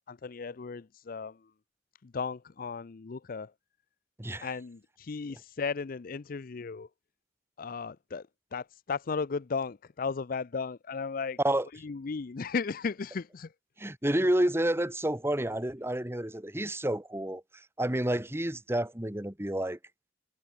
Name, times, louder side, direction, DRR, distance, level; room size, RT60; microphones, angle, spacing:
voice 1, 0.0-1.4 2.0-3.5 4.4-6.9 7.6-8.2 8.5-11.4 11.8-13.5, left 5 dB, 55° left, 0.5 m, -35 dB
voice 2, 13.8-19.8, right 1 dB, 15° right, 1.7 m, -30 dB
head